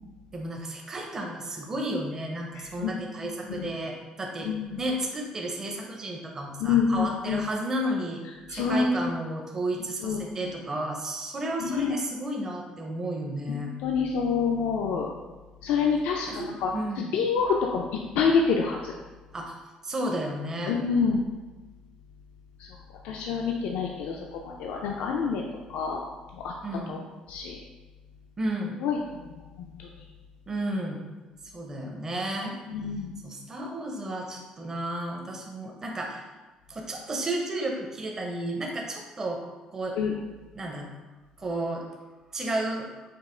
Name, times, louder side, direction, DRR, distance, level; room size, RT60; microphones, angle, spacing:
voice 1, 0.3-4.5 4.8-8.2 8.5-13.7 16.2-17.2 19.3-19.5 19.8-20.8 26.6-27.0 28.4-28.8 30.5-31.0 31.5-32.6 33.2-36.2 36.7-39.4 39.7-40.0 40.5-40.9 41.4-41.8 42.3-42.9, right 1 dB, 25° right, 0 dB, 0.5 m, -32 dB
voice 2, 2.6-2.9 3.5-3.7 4.4-4.8 6.6-7.4 8.5-8.9 10.0-10.2 11.6-11.9 13.5-15.1 15.6-16.7 17.1-17.9 18.2-18.9 20.7-21.2 23.0-24.2 24.4-25.4 25.7-26.0 26.4-26.5 26.9-27.0 27.3-27.6 28.8-29.0 32.7-33.1 40.0-40.1, left 6 dB, 90° left, 0 dB, 0.4 m, -26 dB
5.1 x 2.4 x 3.7 m, 1.2 s
cardioid pair, 150°, 2 cm